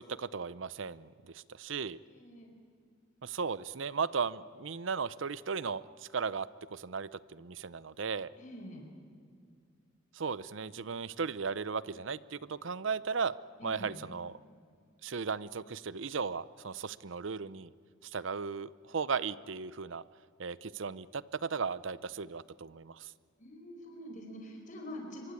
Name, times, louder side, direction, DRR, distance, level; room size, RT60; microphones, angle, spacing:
voice 1, 0.0-2.0 3.2-8.3 10.1-13.3 13.6-14.4 15.0-17.7 18.0-20.0 20.4-23.1, right 5 dB, 70° right, 18 dB, 0.6 m, -36 dB
voice 2, 2.1-2.5 8.4-8.9 13.6-14.0 23.4-25.3, left 1 dB, 40° left, 2 dB, 4.7 m, -45 dB
26.0 x 23.5 x 8.5 m, 2.2 s
head